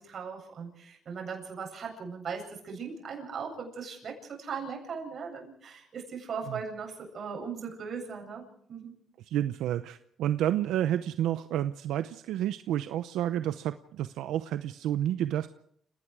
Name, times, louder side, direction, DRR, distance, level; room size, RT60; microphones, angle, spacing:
voice 1, 0.0-8.9, right 5 dB, 55° right, 2 dB, 8.0 m, -39 dB
voice 2, 9.3-15.5, right 11 dB, 90° right, 11 dB, 0.7 m, -30 dB
30.0 x 18.0 x 4.9 m, 0.64 s
cardioid pair, 90°, 0 cm